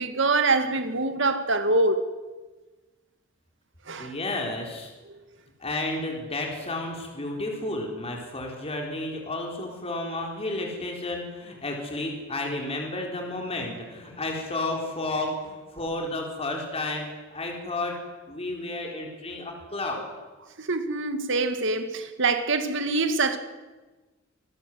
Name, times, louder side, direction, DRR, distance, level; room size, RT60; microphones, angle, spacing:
voice 1, 0.0-2.1 3.9-4.1 5.1-5.2 20.6-23.4, right 3 dB, 65° right, 2.2 m, -25 dB
voice 2, 4.0-4.9 5.6-17.1 17.3-17.9 18.3-20.1, left 2 dB, 30° left, 4.2 m, -32 dB
27.0 x 19.5 x 7.9 m
head